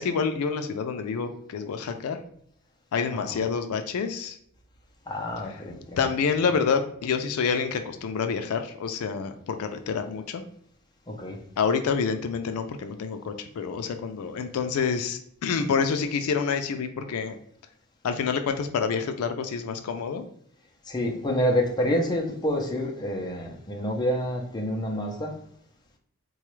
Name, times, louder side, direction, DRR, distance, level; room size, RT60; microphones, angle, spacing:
voice 1, 0.0-2.2 2.9-4.4 6.0-10.4 11.6-17.4 18.0-20.2, left 5 dB, 75° left, 7 dB, 0.4 m, -27 dB
voice 2, 3.1-3.4 5.1-6.1 11.1-11.4 20.9-25.3, equal, 20° left, 0 dB, 0.5 m, -28 dB
3.9 x 2.3 x 3.0 m, 0.68 s
head